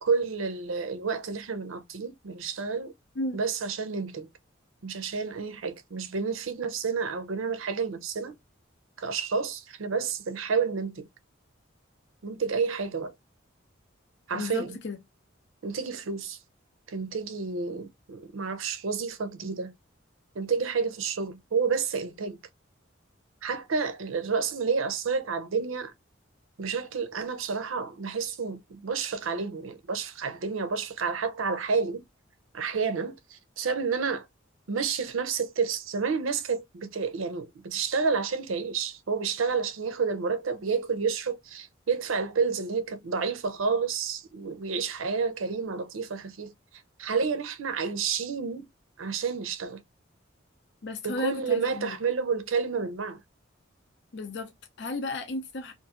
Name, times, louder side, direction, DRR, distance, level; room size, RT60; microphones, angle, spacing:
voice 1, 0.0-2.9 3.3-4.3 4.8-8.3 9.0-11.1 12.2-13.1 14.3-14.8 15.6-16.4 16.9-19.7 20.3-22.4 23.4-25.9 26.6-32.0 32.5-34.3 34.7-46.5 47.0-48.7 49.0-49.8 51.0-53.2, right 5 dB, 85° right, 0.5 m, -30 dB
voice 2, 14.3-15.0 50.8-52.0 54.1-55.7, left 2 dB, 60° left, 0.6 m, -34 dB
2.8 x 2.6 x 2.4 m
head